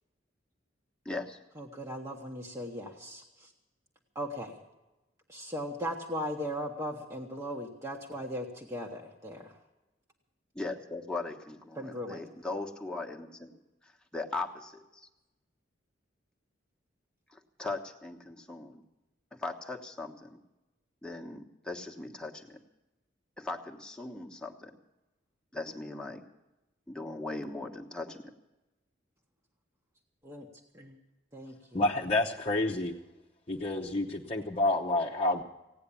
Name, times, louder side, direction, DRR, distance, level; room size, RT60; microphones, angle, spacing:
voice 1, 1.0-1.4 10.5-13.5 13.8-15.1 17.3-18.8 19.3-20.4 21.0-22.6 23.4-24.7 25.5-26.2 26.9-28.2, left 3 dB, 5° left, 1 dB, 1.3 m, -39 dB
voice 2, 1.6-3.5 4.1-4.6 5.3-9.6 11.8-12.2 30.2-30.5 30.7-31.0 31.3-31.9, equal, 15° right, -1 dB, 1.2 m, -38 dB
voice 3, 31.7-32.9 33.5-35.4, left 2 dB, 35° left, -4 dB, 1.0 m, -29 dB
16.5 x 9.6 x 8.5 m, 1.0 s
head